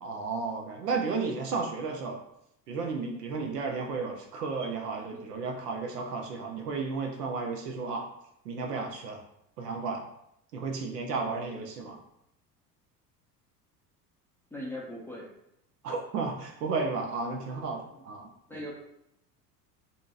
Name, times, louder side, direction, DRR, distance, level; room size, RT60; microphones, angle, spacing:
voice 1, 0.0-2.2 2.7-8.1 8.4-9.2 9.6-10.1 10.5-12.0 15.8-18.3, right 4 dB, 75° right, 1 dB, 0.6 m, -33 dB
voice 2, 14.5-15.4 17.9-18.0 18.5-18.7, left 1 dB, 5° left, -4 dB, 0.5 m, -40 dB
2.7 x 2.6 x 2.4 m, 0.77 s
figure-of-eight pair, 70°, 48 cm